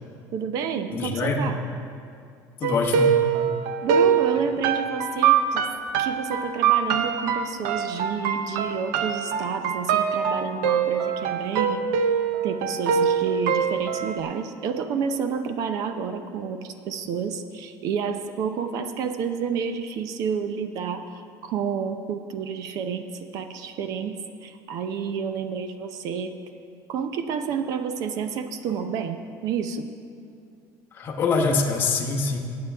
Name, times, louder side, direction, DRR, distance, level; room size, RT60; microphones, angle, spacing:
voice 1, 0.3-1.6 3.8-5.6 6.0-11.8 12.4-23.1 23.3-26.3 26.9-29.9, right 6 dB, 50° right, 9 dB, 0.7 m, -30 dB
voice 2, 0.9-1.4 2.6-3.2 30.9-32.4, left 3 dB, 30° left, 0 dB, 1.1 m, -24 dB
sound 1, 2.6-14.2, right 7 dB, 85° right, 0.7 m, -23 dB
19.5 x 8.7 x 3.5 m, 2.4 s
cardioid pair, 175°, 8 cm